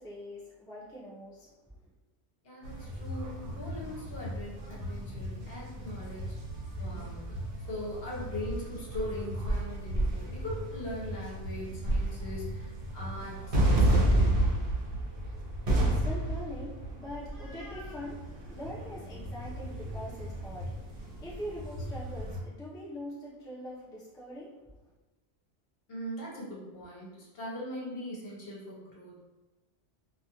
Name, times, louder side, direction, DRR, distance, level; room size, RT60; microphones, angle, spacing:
voice 1, 0.0-1.5 15.5-24.5, equal, 5° left, -7 dB, 0.3 m, -43 dB
voice 2, 2.4-6.3 6.8-7.4 7.7-14.5 25.9-29.2, left 1 dB, 55° left, -5 dB, 1.0 m, -41 dB
sound 1, 2.6-22.4, right 1 dB, 55° right, 0.9 m, -32 dB
2.4 x 2.3 x 2.8 m, 1.2 s
omnidirectional pair, 1.2 m